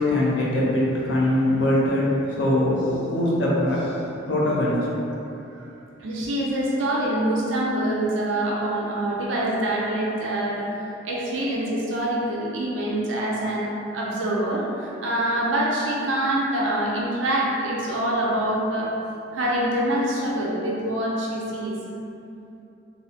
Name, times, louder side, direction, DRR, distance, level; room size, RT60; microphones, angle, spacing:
voice 1, 0.0-4.9, left 1 dB, 75° left, -5 dB, 0.6 m, -22 dB
voice 2, 6.0-10.7 11.0-13.7 13.9-18.9 19.3-21.8, right 1 dB, 90° right, -4 dB, 0.5 m, -25 dB
2.6 x 2.1 x 2.6 m, 2.8 s
head